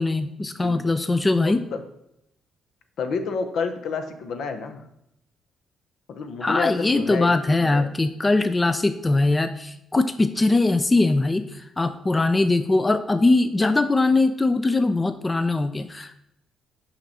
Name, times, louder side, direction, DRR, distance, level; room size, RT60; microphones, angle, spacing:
voice 1, 0.0-1.6 6.4-16.2, left 2 dB, 20° left, 10 dB, 0.4 m, -21 dB
voice 2, 0.5-0.9 1.4-1.8 3.0-4.9 6.1-7.9, left 5 dB, 70° left, 7 dB, 0.7 m, -30 dB
5.7 x 5.2 x 4.1 m, 0.80 s
cardioid pair, 90°, 0 cm